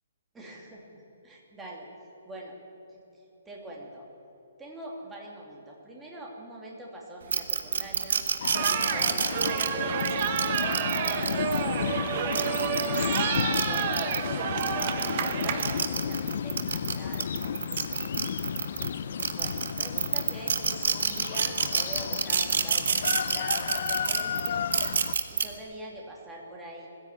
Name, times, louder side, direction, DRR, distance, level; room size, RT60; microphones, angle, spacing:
voice 1, 0.3-1.9 2.2-2.6 2.9-4.1 4.6-8.2 8.7-9.9 10.4-15.0 15.2-17.6 18.6-18.8 19.3-20.5 20.9-24.7 25.3-26.9, right 1 dB, 5° right, -2 dB, 2.7 m, -44 dB
sound 1, 7.3-11.6 12.2-14.2 14.6-18.9 19.2-25.4, right 6 dB, 60° right, 1.7 m, -28 dB
sound 2, 8.4-25.1, left 8 dB, 45° left, 0.5 m, -33 dB
sound 3, 8.5-15.8, right 8 dB, 30° right, 1.2 m, -30 dB
20.5 x 15.5 x 8.9 m, 3.0 s
hypercardioid pair, 175°, 0 cm